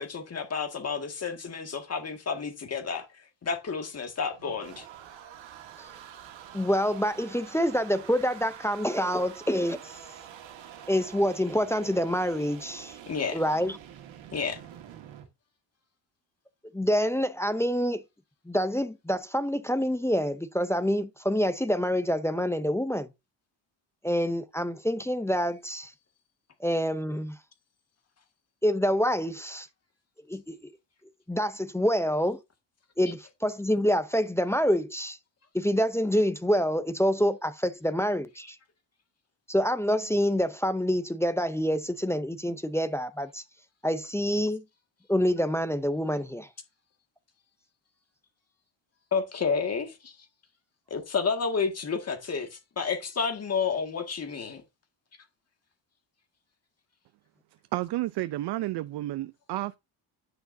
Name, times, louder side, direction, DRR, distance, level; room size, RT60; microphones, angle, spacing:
voice 1, 0.0-3.1 3.4-4.9 13.1-13.4 14.3-14.6 49.1-50.1 50.9-54.6, left 5 dB, 35° left, 1.9 m, -30 dB
sound 1, 4.0-15.3, right 10 dB, 75° right, 1.8 m, -47 dB
voice 2, 6.5-9.9 10.9-12.9 13.3-13.8 16.7-18.0 18.5-23.1 24.0-25.9 26.6-27.4 28.6-29.7 30.3-30.7 31.3-32.4 33.0-35.2 35.5-38.6 39.5-43.4 43.8-44.6 45.1-46.5, equal, 5° left, 0.5 m, -27 dB
voice 3, 57.7-59.8, right 16 dB, 60° right, 0.5 m, -31 dB
9.6 x 6.1 x 2.6 m
cardioid pair, 135°, 46 cm